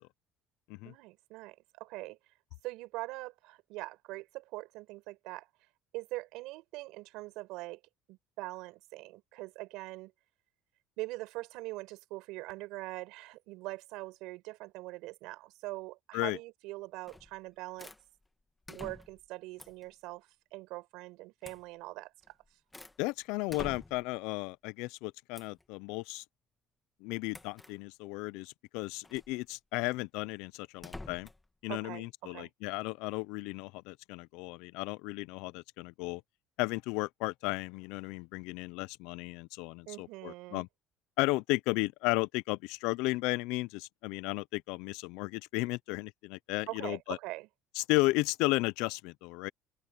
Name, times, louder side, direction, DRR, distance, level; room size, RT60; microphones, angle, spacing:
voice 1, 0.8-2.2 2.6-5.5 5.9-7.8 8.1-10.1 11.0-17.9 18.7-22.3 31.7-32.5 39.9-40.7 46.7-47.5, right 20 dB, 75° right, 4.7 m, -43 dB
sound 1, 17.1-17.4 17.8-18.0 18.7-19.3 19.6-19.9 21.4-21.7 22.2-23.0 23.5-24.2 25.3-25.6 27.3-27.7 29.0-29.3 30.8-31.5, left 2 dB, 10° left, 1.4 m, -47 dB
voice 2, 23.0-26.2 27.0-31.3 31.6-36.2 36.6-40.7 41.2-47.2 47.8-49.5, left 23 dB, 80° left, 0.5 m, -34 dB
cardioid pair, 170°, 0 cm